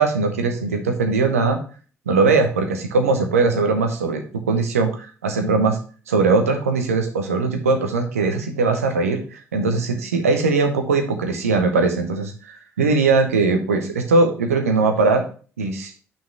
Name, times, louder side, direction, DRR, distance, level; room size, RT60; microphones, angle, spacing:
voice 1, 0.0-1.6 2.1-4.2 4.5-5.8 6.1-15.2 15.6-15.9, right 3 dB, 80° right, 5 dB, 1.0 m, -20 dB
6.2 x 4.5 x 6.0 m, 0.40 s
figure-of-eight pair, 45°, 8 cm